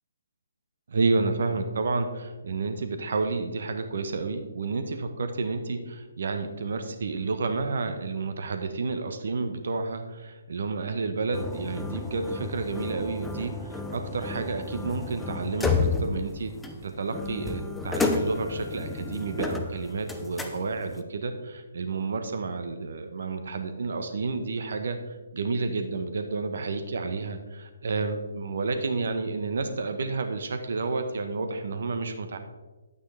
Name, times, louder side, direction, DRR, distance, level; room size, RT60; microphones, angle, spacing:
voice 1, 0.9-16.5 16.8-25.0 25.3-32.4, right 3 dB, 55° right, 7 dB, 1.2 m, -30 dB
sound 1, 11.3-21.0, left 3 dB, 5° left, 0.6 m, -32 dB
9.7 x 8.9 x 3.5 m, 1.2 s
figure-of-eight pair, 140°, 0 cm